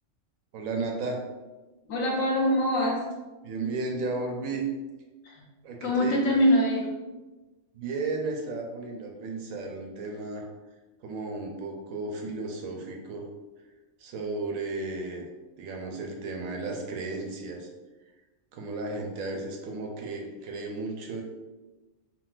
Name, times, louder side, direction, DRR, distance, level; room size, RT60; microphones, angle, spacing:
voice 1, 0.5-1.2 3.4-4.7 5.6-6.4 7.7-10.4 11.0-13.2 14.0-15.2 15.6-17.7 18.5-21.2, right 3 dB, 85° right, 1 dB, 1.0 m, -34 dB
voice 2, 1.9-3.0 5.2-5.4 5.8-6.9, equal, 85° left, -1 dB, 1.1 m, -24 dB
3.7 x 2.2 x 2.4 m, 1.2 s
omnidirectional pair, 1.4 m